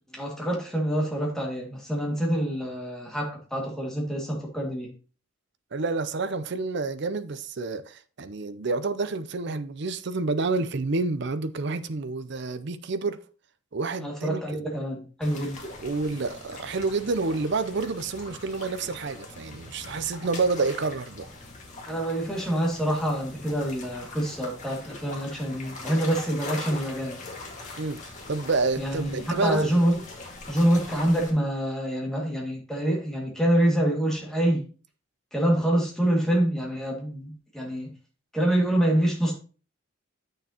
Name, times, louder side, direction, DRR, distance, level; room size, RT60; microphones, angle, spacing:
voice 1, 0.1-4.9 14.0-15.6 21.9-27.2 28.8-29.9 30.5-34.7 35.3-37.9 38.3-39.3, right 1 dB, 5° left, 2.0 m, -26 dB
voice 2, 5.7-13.2 13.7-14.4 15.8-21.3 27.8-29.7, right 3 dB, 60° right, 0.5 m, -29 dB
sound 1, 15.2-31.3, left 2 dB, 40° left, 1.8 m, -42 dB
8.6 x 6.4 x 2.9 m
head